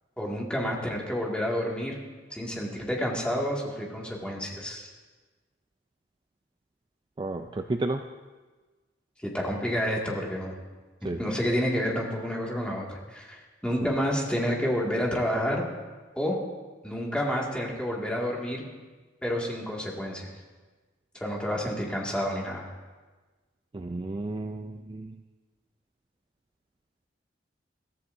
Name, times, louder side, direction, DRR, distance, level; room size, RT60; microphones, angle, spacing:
voice 1, 0.2-2.0 2.3-4.9 9.3-10.5 11.0-15.7 16.2-16.4 16.8-18.6 19.2-20.3 21.1-22.7, equal, 5° left, -3 dB, 2.1 m, -29 dB
voice 2, 7.2-8.0 11.0-11.2 23.7-25.2, right 2 dB, 25° right, 6 dB, 0.4 m, -32 dB
22.0 x 14.5 x 2.7 m, 1.3 s
head